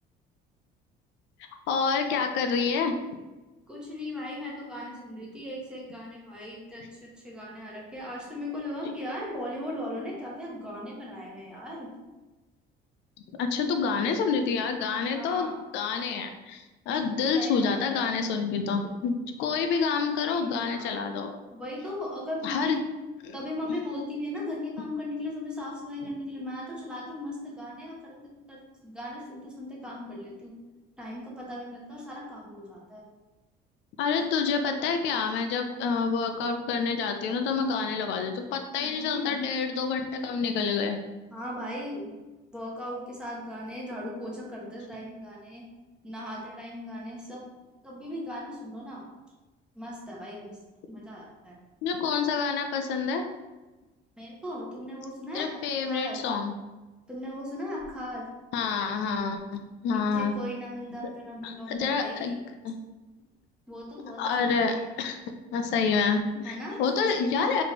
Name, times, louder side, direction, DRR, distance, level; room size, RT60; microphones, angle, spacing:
voice 1, 1.7-2.9 13.4-15.5 15.7-21.3 22.4-22.8 23.3-23.4 34.0-41.0 51.8-53.3 55.3-56.5 58.5-60.3 61.4-62.4 62.6-62.7 64.2-65.2 65.5-67.6, left 5 dB, 75° left, 6 dB, 0.5 m, -28 dB
voice 2, 3.7-11.9 15.1-15.6 17.3-18.2 20.2-21.0 21.5-22.8 23.3-28.2 28.5-30.5 31.0-33.0 38.8-39.5 41.3-42.1 42.5-45.7 46.0-47.5 47.8-49.1 49.7-50.6 50.9-51.6 54.2-56.2 57.1-58.3 60.1-62.4 63.7-64.9 66.4-66.8 67.1-67.6, left 1 dB, 5° right, -4 dB, 0.9 m, -38 dB
4.1 x 3.1 x 3.2 m, 1.2 s
cardioid pair, 165°, 19 cm